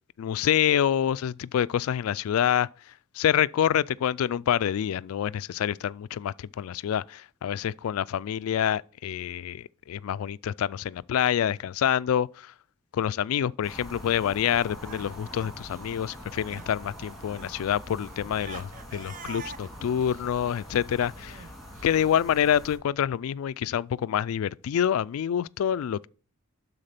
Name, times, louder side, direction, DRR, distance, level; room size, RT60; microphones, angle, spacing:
voice 1, 0.2-12.5 12.9-21.5 21.8-26.1, left 9 dB, 85° left, 0.3 m, -27 dB
sound 1, 13.6-22.8, equal, ahead, 2.1 m, -44 dB
Crying sobbing, 14.6-16.8 17.0-22.1, right 5 dB, 40° right, 0.6 m, -46 dB
11.5 x 4.1 x 5.7 m
head